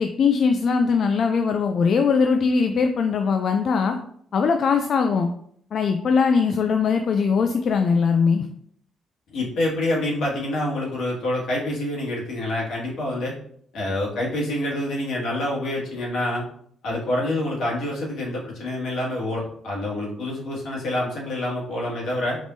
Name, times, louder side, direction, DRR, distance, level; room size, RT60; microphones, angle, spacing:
voice 1, 0.0-4.0 4.3-5.3 5.7-8.5, left 5 dB, 55° left, 5 dB, 0.4 m, -20 dB
voice 2, 9.3-13.3 13.7-16.4 16.8-22.4, left 1 dB, 75° left, -4 dB, 1.9 m, -27 dB
4.8 x 3.5 x 2.7 m, 0.64 s
cardioid pair, 90°, 0 cm